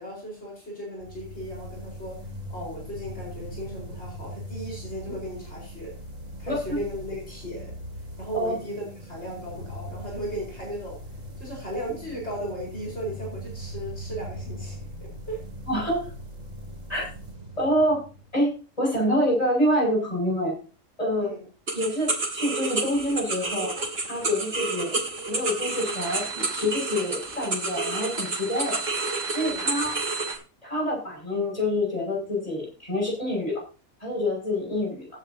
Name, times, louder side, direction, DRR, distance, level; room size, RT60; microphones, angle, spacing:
voice 1, 0.0-6.0 6.4-7.7 8.2-11.0 11.4-15.4 21.2-21.4 29.4-29.7, equal, 55° left, -4 dB, 5.0 m, -36 dB
sound 1, 1.0-18.5, equal, 85° right, 3.1 m, -40 dB
voice 2, 15.7-16.1 16.9-17.0 17.6-18.0 18.3-20.5 21.0-21.3 21.7-23.7 24.1-24.9 25.3-28.8 29.3-29.9 30.6-33.6 34.0-35.1, equal, 25° left, -2 dB, 6.3 m, -26 dB
sound 2, 21.7-30.4, right 3 dB, 50° right, 2.4 m, -30 dB
sound 3, 23.8-30.3, right 4 dB, 35° right, 2.5 m, -37 dB
16.0 x 9.6 x 2.8 m, 0.35 s
omnidirectional pair, 1.3 m